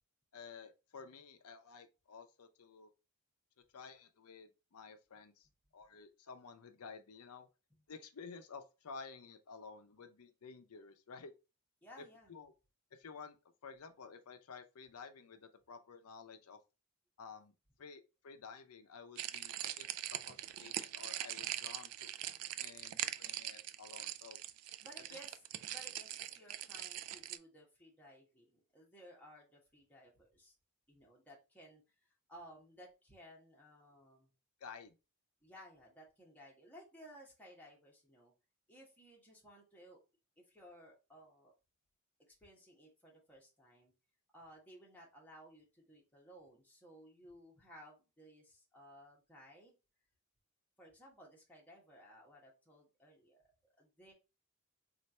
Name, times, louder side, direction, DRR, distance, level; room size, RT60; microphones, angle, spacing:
voice 1, 0.3-2.9 3.7-7.5 7.9-11.3 12.0-12.5 12.9-13.4 13.6-16.6 17.2-17.5 17.8-22.1 22.6-24.4 25.1-25.2 34.6-34.9, left 5 dB, 80° left, 0.6 m, -53 dB
voice 2, 11.8-12.3 24.8-25.4 25.7-30.5 30.9-34.3 35.4-38.3 38.7-40.0 40.4-41.5 42.3-43.9 44.3-49.7 50.8-53.5 53.8-54.1, equal, 10° left, 1.2 m, -58 dB
sound 1, 19.2-27.4, right 13 dB, 80° right, 0.3 m, -42 dB
3.2 x 2.5 x 4.1 m
head